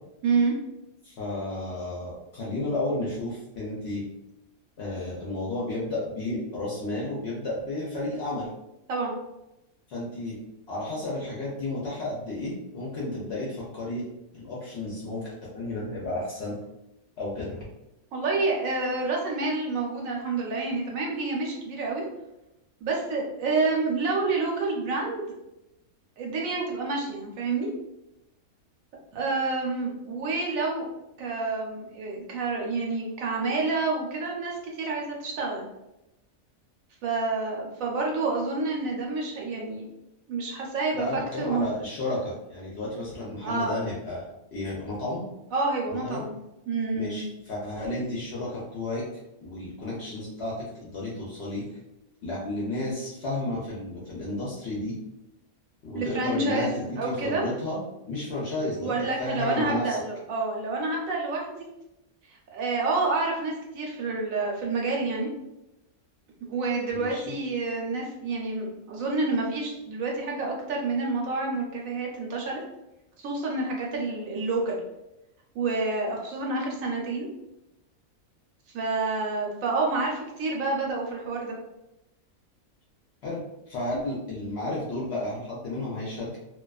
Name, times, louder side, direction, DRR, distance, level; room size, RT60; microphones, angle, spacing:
voice 1, 0.2-0.5 8.9-9.1 18.1-22.0 22.8-25.3 26.2-27.7 29.1-30.9 31.2-35.7 37.0-39.9 40.3-41.7 43.4-43.7 45.5-46.3 46.7-47.2 55.9-57.4 58.8-61.7 62.3-65.3 66.5-72.6 73.2-74.8 75.5-77.3 78.7-81.5, right 3 dB, 70° right, -1 dB, 0.9 m, -28 dB
voice 2, 1.0-4.0 4.8-8.5 9.9-10.4 10.7-14.0 14.3-16.6 17.2-17.6 40.9-45.2 45.9-46.2 46.9-49.1 49.4-51.6 52.2-54.9 55.8-57.8 58.1-60.0 66.9-67.3 83.2-86.4, left 2 dB, 65° left, -6 dB, 0.7 m, -32 dB
2.4 x 2.3 x 2.3 m, 0.92 s
omnidirectional pair, 1.5 m